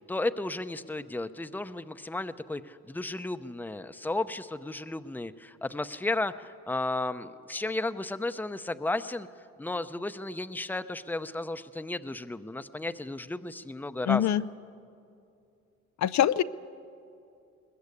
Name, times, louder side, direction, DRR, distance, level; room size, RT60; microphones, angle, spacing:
voice 1, 0.0-9.3 9.6-14.3, left 2 dB, 5° left, 11 dB, 0.7 m, -33 dB
voice 2, 14.1-14.4 16.0-16.4, left 11 dB, 65° left, 13 dB, 0.6 m, -23 dB
21.5 x 20.0 x 8.4 m, 2.5 s
cardioid pair, 90°, 30 cm